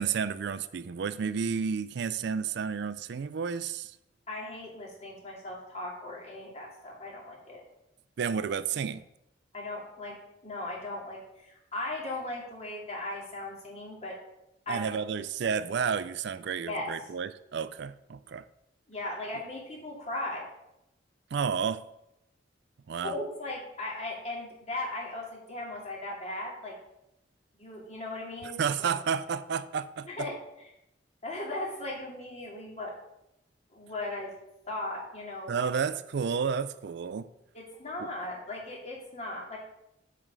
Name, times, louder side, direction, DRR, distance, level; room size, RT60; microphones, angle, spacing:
voice 1, 0.0-4.0 8.2-9.0 14.7-18.4 21.3-21.8 22.9-23.1 28.6-30.3 35.5-37.3 38.0-38.1, right 6 dB, 65° right, 0.4 m, -31 dB
voice 2, 4.3-7.6 9.5-14.2 14.7-14.9 16.7-16.9 18.9-20.5 23.0-26.8 27.6-28.6 30.0-30.3 31.2-32.9 33.7-34.3 34.7-35.7 37.5-39.6, left 2 dB, 40° left, 2.4 m, -37 dB
7.1 x 5.1 x 6.7 m
head